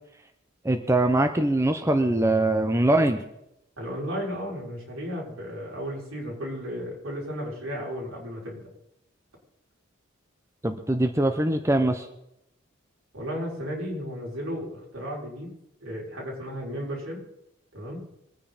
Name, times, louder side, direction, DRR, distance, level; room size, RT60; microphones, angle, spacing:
voice 1, 0.6-3.2 10.6-12.1, right 1 dB, 15° right, 7 dB, 0.9 m, -22 dB
voice 2, 3.8-8.6 13.1-15.5 15.8-17.2 17.7-18.0, equal, 85° right, -3 dB, 6.3 m, -34 dB
24.0 x 9.8 x 4.2 m, 0.82 s
head